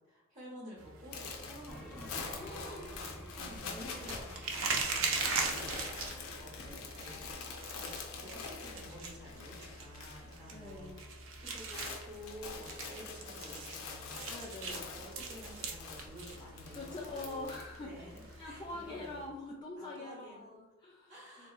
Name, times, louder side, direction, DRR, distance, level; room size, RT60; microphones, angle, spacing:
voice 1, 0.1-3.0 3.3-19.3 19.8-20.5 21.1-21.5, equal, 40° right, -4 dB, 0.8 m, -51 dB
sound 1, 0.8-19.3, right 4 dB, 70° right, 0.5 m, -42 dB
sound 2, 1.1-10.4 10.7-11.0 11.3-18.3, left 5 dB, 85° left, 0.6 m, -45 dB
sound 3, 1.7-7.4, equal, 5° left, 0.8 m, -52 dB
voice 2, 2.4-2.9 10.5-11.0 14.3-14.8 16.7-17.9 18.4-21.1 21.4-21.5, left 2 dB, 20° left, -4 dB, 0.3 m, -44 dB
3.6 x 2.6 x 2.3 m, 1.0 s
head